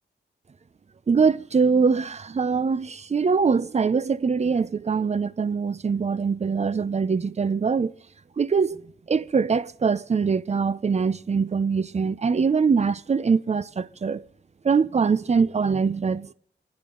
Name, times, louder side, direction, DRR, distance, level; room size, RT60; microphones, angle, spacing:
voice 1, 1.1-7.9 8.4-8.8 9.1-14.2 14.6-16.3, right 5 dB, 35° right, 0.6 m, -23 dB
28.5 x 9.8 x 3.8 m
wide cardioid pair, 105°, 19 cm